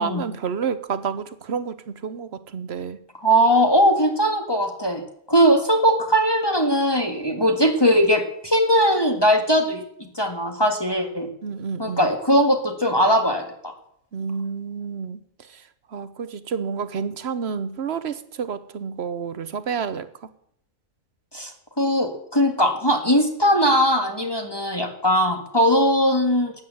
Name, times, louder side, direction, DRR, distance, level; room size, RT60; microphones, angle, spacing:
voice 1, 0.0-3.0 11.4-12.1 14.1-15.2 15.9-20.1, right 6 dB, 55° right, 13 dB, 1.0 m, -29 dB
voice 2, 3.2-5.0 5.3-11.3 11.8-13.7 21.3-21.5 21.8-26.6, equal, 20° left, 3 dB, 1.8 m, -20 dB
13.0 x 9.5 x 7.8 m, 0.70 s
omnidirectional pair, 1.4 m